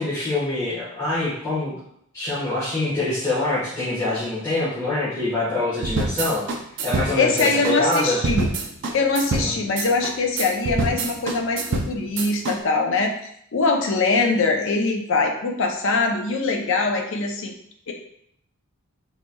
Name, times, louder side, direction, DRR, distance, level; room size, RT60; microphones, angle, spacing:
voice 1, 0.0-1.7 2.1-6.5 6.8-8.2 9.3-9.5, left 2 dB, 15° left, -13 dB, 1.2 m, -25 dB
sound 1, 5.8-12.6, right 3 dB, 55° right, 0.4 m, -26 dB
voice 2, 7.2-8.5 8.9-13.1 13.5-17.5 17.9-18.0, left 3 dB, 60° left, 2 dB, 0.5 m, -22 dB
4.2 x 2.8 x 2.2 m, 0.71 s
head